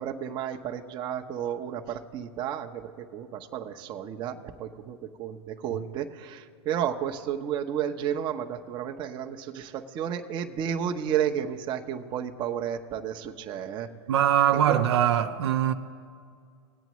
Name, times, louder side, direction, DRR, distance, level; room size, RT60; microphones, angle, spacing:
voice 1, 0.0-13.9 14.5-14.8, right 9 dB, 35° right, 0.8 m, -32 dB
voice 2, 14.1-15.7, right 10 dB, 75° right, 0.7 m, -22 dB
20.0 x 8.2 x 3.1 m
hypercardioid pair, 125°, 14 cm